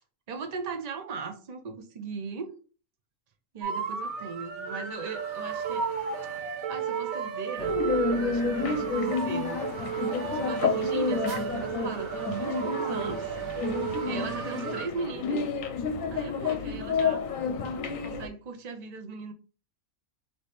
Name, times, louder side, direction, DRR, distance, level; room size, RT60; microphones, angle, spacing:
voice 1, 0.3-2.5 3.5-5.9 6.7-7.8 8.1-9.7 10.3-13.3 14.1-15.4 16.1-17.2 18.0-19.3, right 5 dB, 55° right, 6 dB, 0.4 m, -38 dB
sound 1, 3.6-14.9, right 6 dB, 75° right, 1.5 m, -33 dB
sound 2, 7.6-18.3, left 5 dB, 70° left, 1.0 m, -30 dB
4.1 x 3.1 x 3.3 m, 0.37 s
omnidirectional pair, 1.5 m